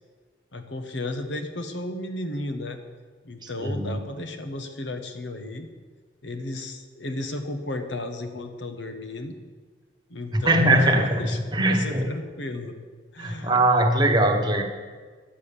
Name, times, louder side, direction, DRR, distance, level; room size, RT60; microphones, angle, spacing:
voice 1, 0.5-2.8 3.2-5.7 6.2-9.4 10.1-12.8 13.1-13.5, left 2 dB, 85° left, 7 dB, 1.2 m, -33 dB
voice 2, 3.6-4.0 10.3-11.2 11.5-12.1 13.2-14.6, right 1 dB, 25° right, 3 dB, 1.2 m, -21 dB
10.5 x 7.7 x 6.8 m, 1.5 s
head